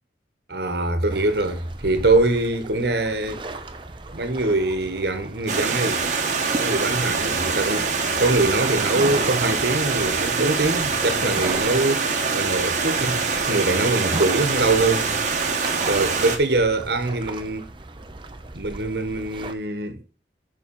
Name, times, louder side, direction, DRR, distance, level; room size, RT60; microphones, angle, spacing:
voice 1, 0.5-3.4 4.1-6.0 6.6-7.9 8.2-15.1 15.9-17.8 18.5-20.0, right 2 dB, 60° right, 1.4 m, -23 dB
sound 1, 1.1-19.5, right 2 dB, 25° right, 0.8 m, -36 dB
Stream, 5.5-16.4, right 4 dB, 45° right, 1.4 m, -24 dB
7.1 x 5.9 x 5.5 m
head